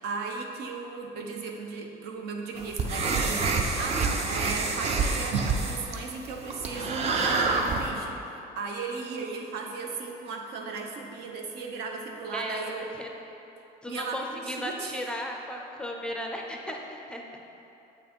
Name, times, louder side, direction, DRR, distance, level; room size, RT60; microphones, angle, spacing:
voice 1, 0.0-8.2 8.6-12.8 13.9-15.0, right 4 dB, 75° right, 2 dB, 0.9 m, -36 dB
sound 1, 2.6-7.9, right 4 dB, 40° right, 0.6 m, -27 dB
voice 2, 12.3-12.6 13.0-13.1 13.8-17.2, equal, 5° left, 1 dB, 0.4 m, -35 dB
7.7 x 6.0 x 4.4 m, 3.0 s
cardioid pair, 175°, 17 cm